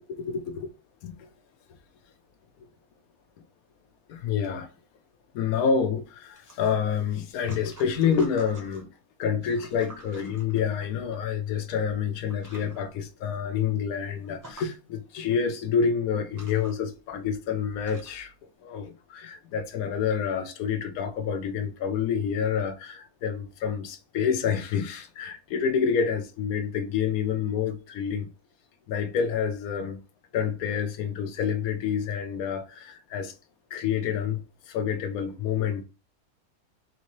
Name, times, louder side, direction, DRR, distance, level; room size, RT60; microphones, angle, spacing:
voice 1, 0.2-0.7 1.0-1.3 4.1-4.7 5.3-8.9 9.2-18.3 18.6-28.3 28.9-30.0 30.3-33.3 33.7-35.8, left 7 dB, 70° left, 1.0 m, -28 dB
sound 1, 6.3-8.9 9.3-11.2 11.9-12.0 12.3-12.8 13.3-13.4 13.7-13.8 14.2-14.7 15.7-15.8 16.2-18.3, right 2 dB, 15° right, 0.7 m, -50 dB
3.7 x 2.7 x 3.0 m
omnidirectional pair, 1.7 m